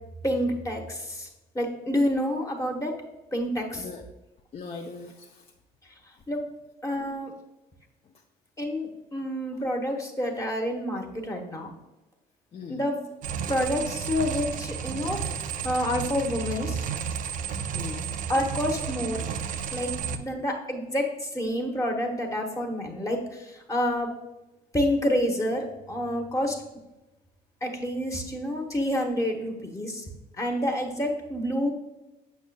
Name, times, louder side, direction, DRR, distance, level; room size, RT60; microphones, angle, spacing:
voice 1, 0.2-1.3 1.5-2.9 3.3-3.9 6.3-6.4 6.8-7.3 8.6-11.7 12.7-13.0 13.5-15.2 15.6-16.8 18.3-19.2 19.7-19.9 20.2-24.1 24.7-26.6 27.6-30.0 30.4-31.7, equal, 20° left, 1 dB, 0.9 m, -28 dB
voice 2, 4.5-5.5 12.5-12.8 17.7-18.1 20.1-20.2, left 5 dB, 35° left, 1 dB, 0.5 m, -40 dB
sound 1, 13.2-20.2, right 7 dB, 50° right, 0.5 m, -32 dB
7.2 x 6.0 x 2.2 m, 0.99 s
cardioid pair, 110°, 17 cm